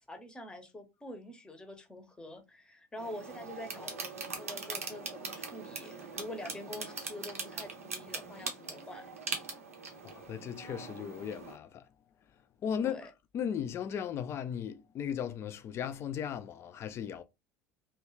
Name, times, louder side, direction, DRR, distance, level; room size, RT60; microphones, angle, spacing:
voice 1, 0.0-4.0 4.3-9.1 12.8-13.1, left 1 dB, 10° left, 0.7 m, -46 dB
sound 1, 3.0-11.6, right 4 dB, 80° right, 0.6 m, -41 dB
voice 2, 10.0-11.8 12.6-13.0 13.3-17.2, left 8 dB, 35° left, 0.4 m, -36 dB
2.8 x 2.3 x 3.0 m
figure-of-eight pair, 70°, 8 cm